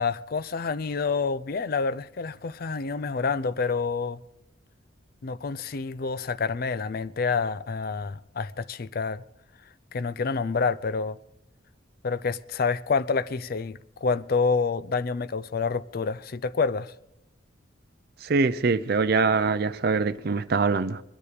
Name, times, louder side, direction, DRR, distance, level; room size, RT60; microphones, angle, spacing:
voice 1, 0.0-4.2 5.2-9.2 9.9-11.2 12.0-16.9, left 4 dB, 50° left, 0.4 m, -28 dB
voice 2, 18.2-21.0, right 4 dB, 50° right, 0.5 m, -23 dB
21.5 x 9.8 x 5.0 m
head